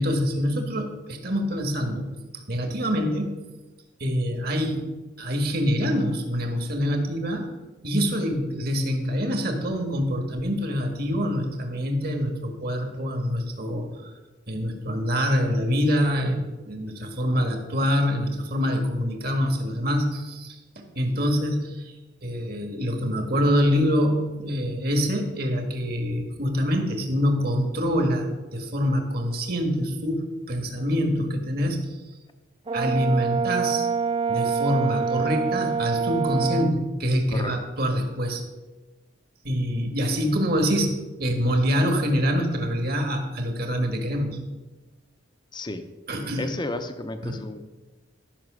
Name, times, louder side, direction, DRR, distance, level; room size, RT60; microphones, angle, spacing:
voice 1, 0.0-2.1 2.3-3.3 4.0-4.9 5.2-7.5 7.8-14.1 14.5-21.9 22.2-32.0 32.7-33.9 34.3-38.4 39.4-44.4 46.1-46.5 47.2-47.4, equal, 50° right, 3 dB, 1.7 m, -25 dB
Brass instrument, 32.7-36.8, right 5 dB, 25° right, 0.3 m, -26 dB
voice 2, 46.4-47.6, left 2 dB, 20° left, 8 dB, 0.6 m, -32 dB
12.5 x 5.9 x 6.2 m, 1.1 s
head